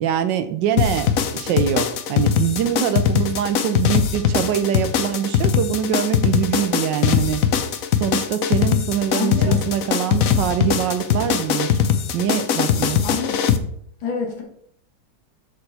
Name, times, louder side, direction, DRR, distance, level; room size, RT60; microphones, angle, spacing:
voice 1, 0.0-7.4 8.0-11.7 12.1-13.0, right 9 dB, 70° right, 10 dB, 1.2 m, -23 dB
sound 1, 0.8-13.6, left 8 dB, 90° left, 0.7 m, -20 dB
voice 2, 9.1-9.6 13.0-13.4 14.0-14.4, left 6 dB, 65° left, 1 dB, 2.2 m, -26 dB
6.6 x 6.3 x 4.1 m, 0.66 s
omnidirectional pair, 2.3 m